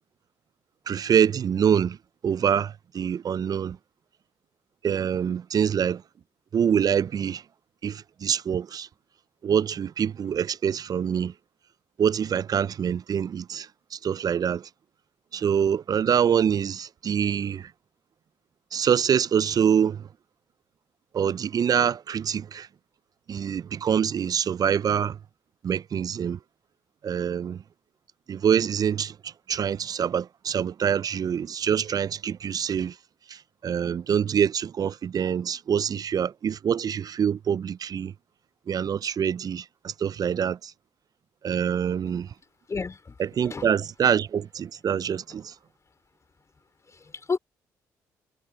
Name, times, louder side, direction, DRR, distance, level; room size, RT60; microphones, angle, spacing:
voice 1, 0.9-2.0 2.2-3.8 4.8-6.0 6.5-7.4 7.8-8.9 9.4-11.3 12.0-14.7 15.3-17.7 18.7-20.1 21.1-22.7 23.3-25.2 25.6-26.4 27.0-27.6 28.3-33.0 33.3-38.1 38.7-40.7 41.4-42.3 43.4-45.5, right 8 dB, 45° right, 0.5 m, -25 dB
voice 2, 42.7-43.2 43.4-43.7 46.9-47.4, left 4 dB, 35° left, 3.2 m, -31 dB
hypercardioid pair, 50°, 9 cm